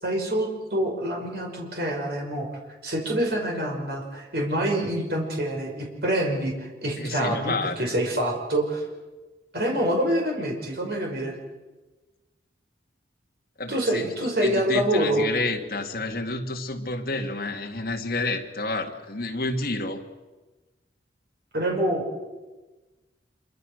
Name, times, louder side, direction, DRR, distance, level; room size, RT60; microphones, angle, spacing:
voice 1, 0.0-2.5 2.8-8.8 9.5-11.4 13.7-15.3 21.5-22.1, right 1 dB, 55° right, 0 dB, 5.3 m, -26 dB
voice 2, 7.0-8.0 13.6-14.1 14.4-20.0, left 2 dB, 50° left, 2 dB, 2.1 m, -29 dB
26.0 x 24.0 x 6.6 m, 1.2 s
head